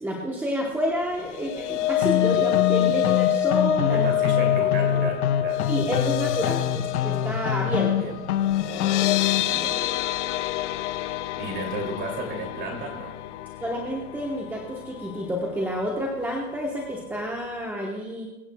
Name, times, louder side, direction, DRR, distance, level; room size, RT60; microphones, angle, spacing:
voice 1, 0.0-4.1 5.7-7.9 13.6-18.3, equal, 5° right, -1 dB, 0.9 m, -29 dB
sound 1, 1.1-15.4 15.7-16.0 16.3-16.4, left 14 dB, 55° left, 0.8 m, -27 dB
sound 2, 2.0-9.4, left 9 dB, 80° left, 1.2 m, -25 dB
voice 2, 3.9-6.0 7.9-8.2 9.5-9.9 11.4-13.2, right 2 dB, 25° right, 2 dB, 2.6 m, -33 dB
23.0 x 8.6 x 2.2 m, 1.1 s
supercardioid pair, 145°, 43 cm